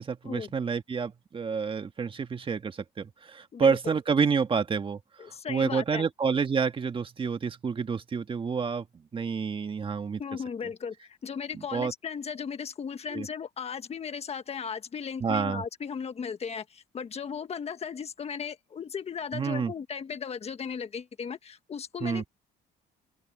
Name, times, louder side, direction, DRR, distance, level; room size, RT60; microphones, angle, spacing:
voice 1, 0.0-5.0 5.5-8.8 9.1-10.2 11.7-11.9 13.1-13.3 15.2-15.6 19.3-19.7 22.0-22.2, right 5 dB, 30° right, 1.7 m, -28 dB
voice 2, 5.2-6.0 10.2-22.3, left 6 dB, 35° left, 1.6 m, -36 dB
open air
cardioid pair, 110°, 17 cm